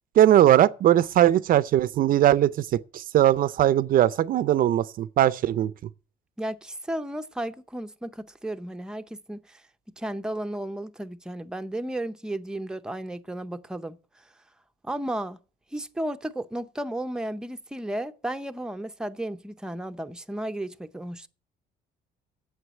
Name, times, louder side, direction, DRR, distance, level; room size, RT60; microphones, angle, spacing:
voice 1, 0.2-2.6 2.9-5.7, right 12 dB, 55° right, 0.5 m, -20 dB
voice 2, 6.4-9.6 10.0-14.0 14.8-15.4 15.7-21.3, right 1 dB, 5° right, 0.7 m, -33 dB
8.0 x 7.8 x 8.6 m
cardioid pair, 110°, 17 cm